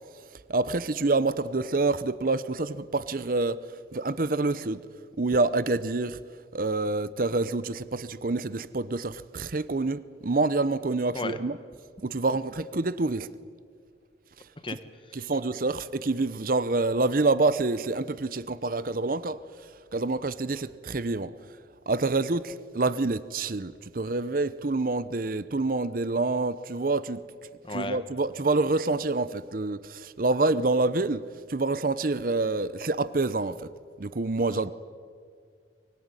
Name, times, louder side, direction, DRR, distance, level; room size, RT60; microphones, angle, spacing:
voice 1, 0.5-3.6 3.9-4.8 5.2-6.2 6.5-11.6 12.0-13.3 15.1-19.4 19.9-21.3 21.9-27.2 27.7-31.2 31.5-33.7 34.0-34.7, right 3 dB, 50° right, 0.7 m, -27 dB
voice 2, 27.6-28.0, left 2 dB, 30° left, 1.3 m, -33 dB
24.0 x 20.0 x 9.8 m
head